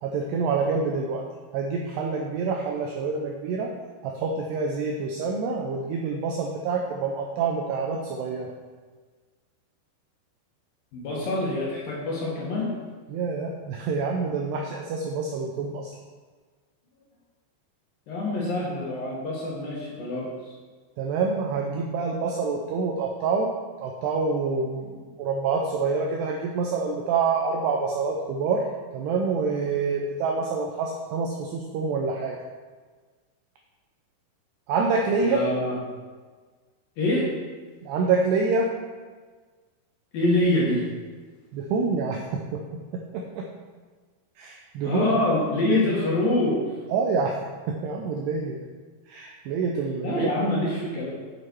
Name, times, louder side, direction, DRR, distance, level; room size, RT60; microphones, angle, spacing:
voice 1, 0.0-1.2 1.5-3.7 4.0-8.5 13.1-15.9 21.0-23.5 23.8-28.7 28.9-32.4 34.7-35.4 37.8-38.7 41.5-42.6 42.9-43.5 44.4-45.1 45.7-45.8 46.9-47.3 47.7-48.6 49.1-50.5, right 4 dB, 85° right, 1 dB, 2.3 m, -27 dB
voice 2, 10.9-12.7 18.1-20.3 35.3-35.8 37.0-37.3 40.1-40.8 44.8-46.7 50.0-51.1, left 1 dB, 60° left, -5 dB, 2.6 m, -25 dB
8.1 x 7.8 x 4.6 m, 1.4 s
omnidirectional pair, 5.6 m